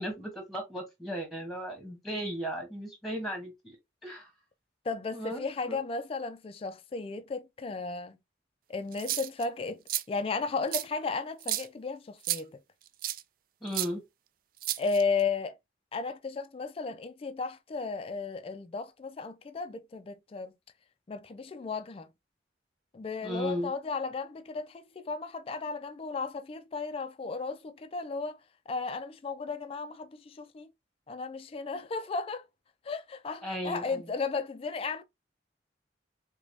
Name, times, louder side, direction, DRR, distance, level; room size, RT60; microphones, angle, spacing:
voice 1, 0.0-3.8 4.0-4.3 5.1-5.8 13.6-14.0 23.2-23.7 33.4-34.1, equal, ahead, 1.1 m, -36 dB
voice 2, 4.8-8.2 8.7-9.8 10.1-12.6 14.8-15.6 15.9-20.5 21.1-22.1 22.9-28.4 28.7-30.7 31.1-32.5 32.8-35.0, left 4 dB, 30° left, 0.3 m, -34 dB
sound 1, 8.9-9.4 9.9-10.0 10.7-10.8 11.4-11.7 12.2-12.4 13.0-13.2 13.7-13.9 14.6-15.2, right 13 dB, 50° right, 0.3 m, -32 dB
5.0 x 2.2 x 2.6 m
head